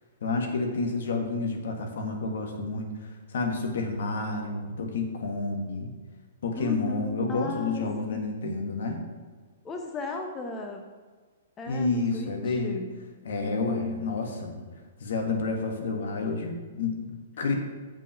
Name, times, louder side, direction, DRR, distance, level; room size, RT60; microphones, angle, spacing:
voice 1, 0.2-5.9 6.4-9.0 11.7-12.8 13.2-14.6 15.0-17.5, left 3 dB, 70° left, 3 dB, 1.7 m, -30 dB
voice 2, 6.6-7.8 8.1-8.3 9.6-10.8 11.6-12.9 13.4-14.5, left 3 dB, 20° left, 3 dB, 1.0 m, -36 dB
7.6 x 6.2 x 5.7 m, 1.4 s
hypercardioid pair, 125°, 0 cm